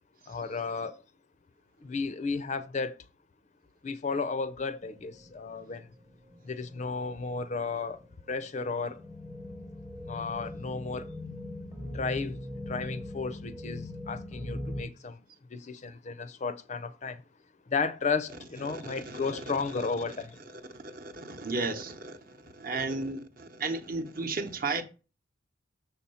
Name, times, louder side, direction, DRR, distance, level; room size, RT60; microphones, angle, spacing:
voice 1, 0.3-1.0 1.8-3.0 3.8-5.9 6.4-8.0 8.3-9.0 10.1-11.1 11.8-15.2 15.5-17.2 17.7-20.4, left 4 dB, 35° left, 0.4 m, -33 dB
sound 1, 4.8-14.8, left 1 dB, 15° right, 0.8 m, -41 dB
voice 2, 18.7-19.4 19.8-19.9 20.5-24.8, right 3 dB, 45° right, 0.9 m, -35 dB
6.8 x 4.1 x 5.5 m
head